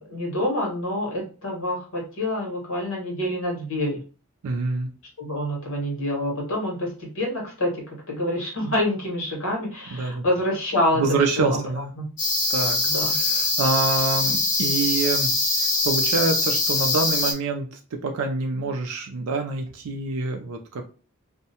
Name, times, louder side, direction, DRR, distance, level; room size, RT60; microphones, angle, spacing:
voice 1, 0.0-4.0 5.2-11.6 12.0-12.1 12.8-13.2, left 1 dB, 60° left, -2 dB, 1.3 m, -27 dB
voice 2, 4.4-4.9 9.9-10.2 10.9-11.9 12.5-12.8 13.1-15.3 15.6-20.9, right 3 dB, 75° right, 3 dB, 0.4 m, -26 dB
sound 1, 12.2-17.3, left 2 dB, 35° left, 0.6 m, -23 dB
2.6 x 2.1 x 2.8 m, 0.36 s
head